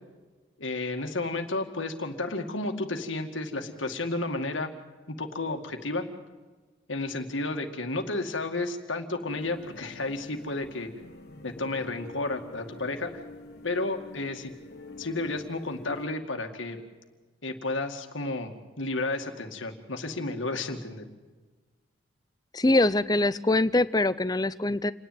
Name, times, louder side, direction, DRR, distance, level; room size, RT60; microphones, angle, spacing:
voice 1, 0.6-4.7 5.1-6.1 6.9-10.9 11.4-13.2 13.6-14.5 15.0-16.8 17.4-21.1, left 2 dB, 75° left, 5 dB, 2.2 m, -32 dB
sound 1, 9.3-16.1, left 2 dB, 55° left, 1.7 m, -46 dB
voice 2, 22.5-24.9, left 2 dB, 20° left, 16 dB, 0.6 m, -23 dB
28.5 x 10.5 x 9.3 m, 1.3 s
head